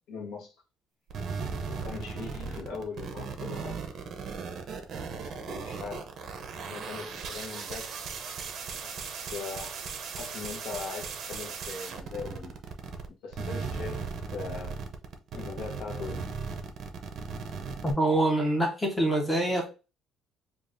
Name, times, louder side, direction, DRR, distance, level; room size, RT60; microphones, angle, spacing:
voice 1, 0.1-0.5 1.7-3.8 5.1-6.1 6.5-7.9 8.8-9.9 10.2-12.6 13.1-14.8 15.3-16.3, left 5 dB, 65° left, 1.0 m, -40 dB
sound 1, 1.1-13.1 13.3-17.9, right 5 dB, 45° right, 0.6 m, -37 dB
voice 2, 17.8-19.7, right 1 dB, 5° left, 0.9 m, -25 dB
5.0 x 2.4 x 2.5 m
cardioid pair, 170°, 0 cm